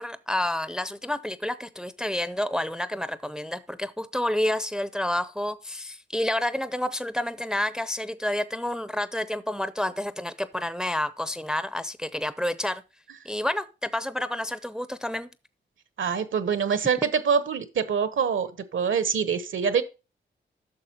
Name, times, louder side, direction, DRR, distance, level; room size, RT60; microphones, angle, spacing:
voice 1, 0.0-12.8 13.3-15.3, left 1 dB, 5° right, 0.6 m, -29 dB
voice 2, 16.0-19.8, right 6 dB, 70° right, 0.9 m, -25 dB
9.7 x 6.2 x 2.9 m
cardioid pair, 45°, 21 cm